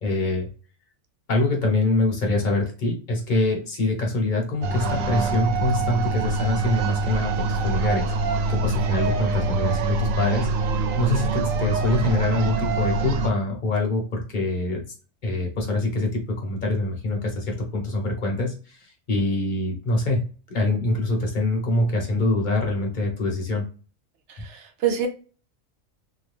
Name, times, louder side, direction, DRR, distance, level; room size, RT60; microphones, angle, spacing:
voice 1, 0.0-0.5 1.3-10.5 11.0-14.8 15.2-20.2 20.5-23.7, left 2 dB, 40° left, 0 dB, 1.0 m, -24 dB
sound 1, 4.6-13.3, right 3 dB, 90° right, 1.0 m, -25 dB
voice 2, 24.3-25.1, right 8 dB, 70° right, 6 dB, 0.8 m, -26 dB
2.8 x 2.3 x 3.3 m, 0.36 s
omnidirectional pair, 1.3 m